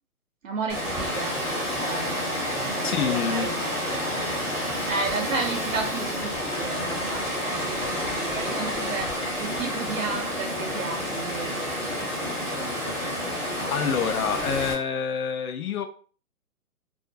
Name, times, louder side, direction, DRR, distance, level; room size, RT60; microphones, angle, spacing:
voice 1, 0.4-2.3 2.7-3.6 4.9-7.3 7.6-9.1 9.4-11.8, right 4 dB, 60° right, 0.5 m, -33 dB
Water, 0.7-14.7, equal, 10° right, 0.6 m, -29 dB
voice 2, 2.8-3.6 13.7-15.9, left 7 dB, 70° left, 0.6 m, -27 dB
2.5 x 2.1 x 2.6 m
hypercardioid pair, 150°, 45 cm